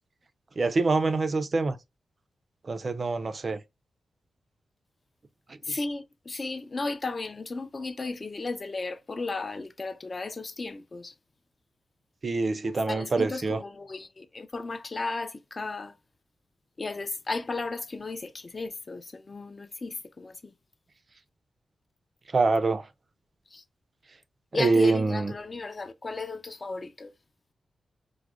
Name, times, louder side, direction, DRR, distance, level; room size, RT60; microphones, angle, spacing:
voice 1, 0.6-1.8 2.7-3.6 12.2-13.6 22.3-22.9 24.5-25.3, right 3 dB, 45° right, 0.3 m, -25 dB
voice 2, 5.6-11.1 12.9-15.9 16.8-20.5 23.5-23.6 24.5-27.1, left 3 dB, 35° left, 0.4 m, -35 dB
4.7 x 2.0 x 2.3 m
cardioid pair, 95°, 0 cm